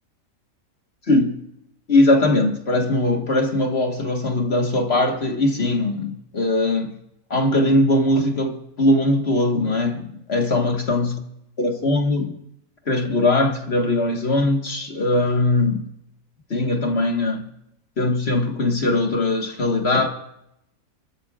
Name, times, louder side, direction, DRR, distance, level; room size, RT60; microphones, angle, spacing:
voice 1, 1.1-1.4 1.9-6.9 7.3-11.2 11.6-12.4 12.9-15.9 16.5-17.5 18.0-20.1, left 2 dB, 50° left, 1.6 m, -20 dB
29.0 x 13.5 x 2.4 m
omnidirectional pair, 1.5 m